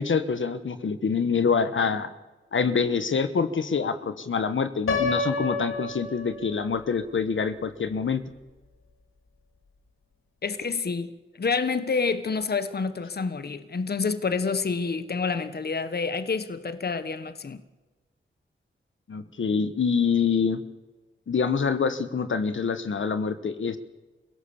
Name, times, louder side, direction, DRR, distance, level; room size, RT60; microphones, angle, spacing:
voice 1, 0.0-2.1 2.5-8.2 19.1-20.6 21.3-23.8, left 5 dB, 70° left, 1.3 m, -26 dB
Piano, 4.9-6.8, left 3 dB, 85° left, 3.9 m, -29 dB
voice 2, 10.4-17.6, left 4 dB, 50° left, 1.3 m, -28 dB
28.5 x 17.0 x 7.2 m
wide cardioid pair, 100°, 21 cm